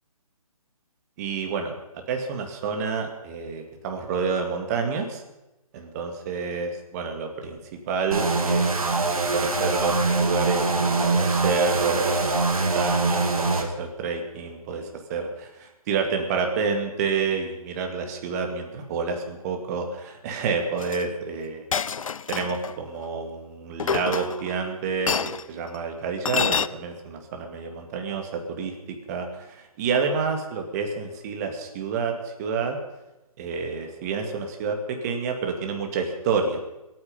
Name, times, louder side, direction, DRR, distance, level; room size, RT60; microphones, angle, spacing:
voice 1, 1.2-1.7 2.1-5.2 5.7-8.7 9.1-21.7 22.3-32.8 33.4-36.6, right 5 dB, 25° right, 4 dB, 2.1 m, -29 dB
sound 1, 8.1-13.6, right 3 dB, 70° right, 2.4 m, -23 dB
Chink clink, 20.8-21.0 21.7-22.7 23.8-24.6 25.1-25.4 26.3-26.7, left 6 dB, 65° left, 0.5 m, -27 dB
27.0 x 9.3 x 5.4 m, 0.98 s
figure-of-eight pair, 145°, 19 cm